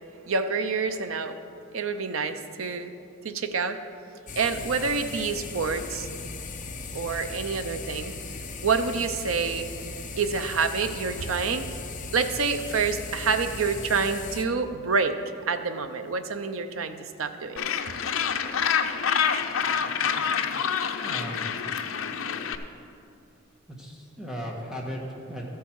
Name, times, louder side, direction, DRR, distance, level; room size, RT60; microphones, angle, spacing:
voice 1, 0.3-1.4 1.7-2.9 3.2-3.8 4.3-6.1 6.9-8.1 8.6-9.7 10.2-11.7 12.1-15.2 15.5-17.6, right 5 dB, 80° right, 9 dB, 0.6 m, -27 dB
sound 1, 4.3-14.4, left 3 dB, 40° left, 0.8 m, -38 dB
Gull seagull, 17.6-22.6, left 7 dB, 85° left, 0.6 m, -27 dB
voice 2, 20.9-21.5 23.7-25.4, equal, 5° right, -2 dB, 1.6 m, -36 dB
13.5 x 8.3 x 4.7 m, 2.6 s
head